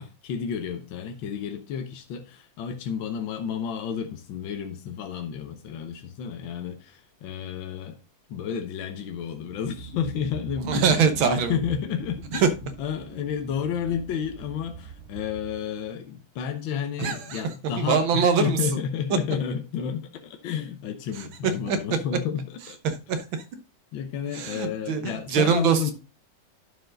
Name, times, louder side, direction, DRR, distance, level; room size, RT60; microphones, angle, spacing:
voice 1, 0.0-8.0 8.3-22.8 23.9-25.9, left 8 dB, 80° left, 1.6 m, -31 dB
sound 1, 9.4-16.0, right 6 dB, 45° right, 0.9 m, -43 dB
voice 2, 10.7-11.6 12.3-12.5 17.0-17.4 17.8-18.8 21.1-22.0 22.6-23.4 24.3-25.9, right 6 dB, 90° right, 1.8 m, -24 dB
11.0 x 4.6 x 3.7 m
omnidirectional pair, 2.1 m